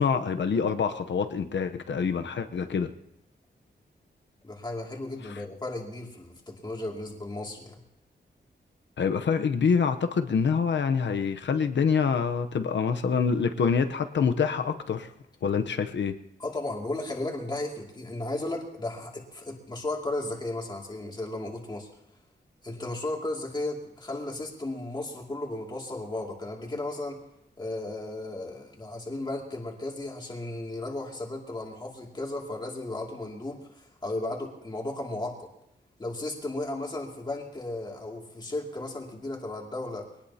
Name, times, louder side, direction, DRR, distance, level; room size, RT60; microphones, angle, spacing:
voice 1, 0.0-2.9 9.0-15.1 15.4-16.1, left 6 dB, 75° left, 7 dB, 0.8 m, -26 dB
voice 2, 4.4-7.8 16.4-21.9 22.6-27.2 27.6-35.5 36.0-40.1, left 2 dB, 25° left, -1 dB, 2.5 m, -35 dB
23.0 x 18.5 x 2.8 m, 0.80 s
wide cardioid pair, 170°, 19 cm